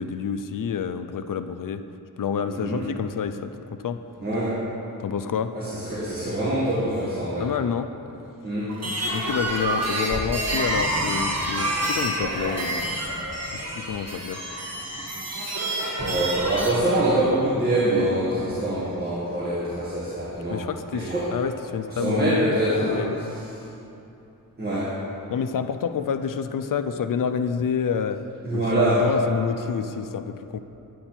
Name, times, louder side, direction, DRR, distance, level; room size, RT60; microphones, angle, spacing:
voice 1, 0.0-1.8 2.2-4.0 5.0-5.6 7.4-7.9 9.1-13.0 13.5-14.4 20.5-23.4 25.3-30.6, left 7 dB, 65° left, 10 dB, 0.5 m, -28 dB
voice 2, 2.5-2.8 4.2-4.6 5.5-7.5 8.4-8.8 16.0-20.6 20.9-21.3 21.9-23.1 24.6-25.0 28.4-29.1, right 1 dB, 25° right, -10 dB, 1.8 m, -24 dB
sound 1, 8.7-16.7, right 1 dB, 45° right, 2.1 m, -28 dB
9.9 x 8.5 x 4.4 m, 2.8 s
wide cardioid pair, 110°, 35 cm